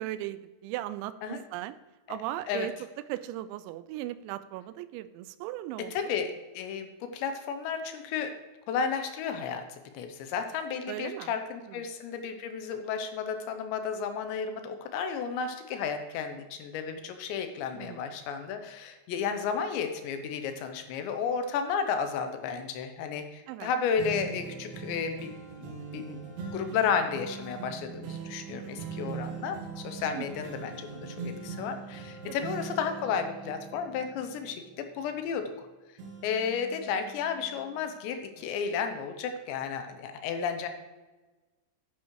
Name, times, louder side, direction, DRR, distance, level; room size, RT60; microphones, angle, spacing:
voice 1, 0.0-1.8 2.1-2.7 3.1-6.1 10.9-11.4 11.7-11.8 17.7-18.1 23.5-23.7 30.1-30.3 32.3-32.4, right 14 dB, 90° right, 14 dB, 2.9 m, -37 dB
voice 2, 5.9-8.3 8.7-35.5 36.2-40.7, left 6 dB, 85° left, 7 dB, 3.1 m, -33 dB
sound 1, 24.0-35.6 36.0-37.9 38.4-38.5, right 5 dB, 70° right, 3.4 m, -42 dB
10.5 x 9.4 x 3.2 m, 1.2 s
omnidirectional pair, 5.2 m